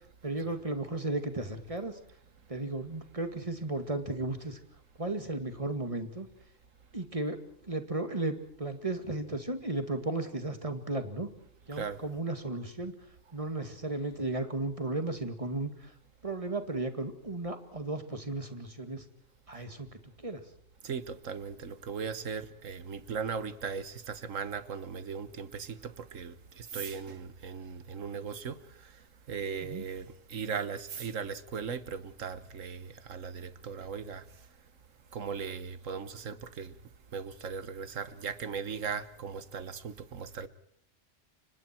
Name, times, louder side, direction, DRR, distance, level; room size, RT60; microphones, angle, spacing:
voice 1, 0.2-2.0 2.5-4.6 5.0-6.3 6.9-11.3 11.7-12.9 13.3-15.9 16.2-19.1 19.5-19.9 20.2-20.4 29.6-29.8, right 2 dB, 25° right, 2.2 m, -34 dB
voice 2, 20.8-28.9 29.3-34.2 35.1-36.7 37.1-40.5, right 6 dB, 80° right, 1.6 m, -38 dB
30.0 x 24.5 x 4.5 m
omnidirectional pair, 1.3 m